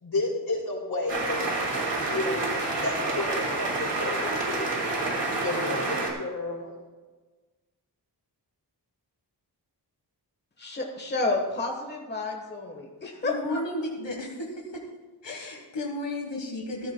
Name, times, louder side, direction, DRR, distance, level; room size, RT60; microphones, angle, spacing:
voice 1, 0.0-4.9 5.4-6.7, left 2 dB, 60° left, -4 dB, 3.9 m, -32 dB
sound 1, 1.1-6.1, right 2 dB, 75° right, 2.3 m, -28 dB
voice 2, 10.6-13.6, left 3 dB, 25° left, 0 dB, 1.3 m, -30 dB
voice 3, 13.2-14.8 15.2-16.9, left 1 dB, 80° left, 0 dB, 1.4 m, -33 dB
13.5 x 13.0 x 2.2 m, 1.3 s
wide cardioid pair, 125°, 42 cm